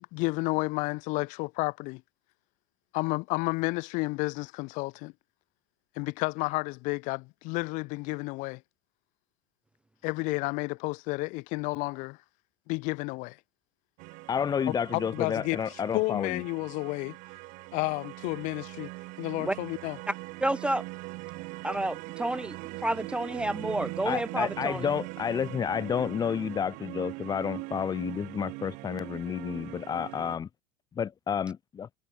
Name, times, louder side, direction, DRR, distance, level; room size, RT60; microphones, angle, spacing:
voice 1, 0.0-2.0 2.9-5.1 6.0-8.6 10.0-12.2 12.7-13.4 14.9-17.2 17.7-18.9 19.2-20.0, left 26 dB, 60° left, 0.9 m, -31 dB
sound 1, 14.0-30.4, right 26 dB, 60° right, 1.6 m, -41 dB
voice 2, 14.3-16.4 24.0-30.5 30.9-31.9, left 7 dB, 25° left, 1.3 m, -30 dB
voice 3, 20.4-20.8 21.6-22.6 22.8-24.9, right 1 dB, 5° right, 0.5 m, -30 dB
supercardioid pair, 110°, 15 cm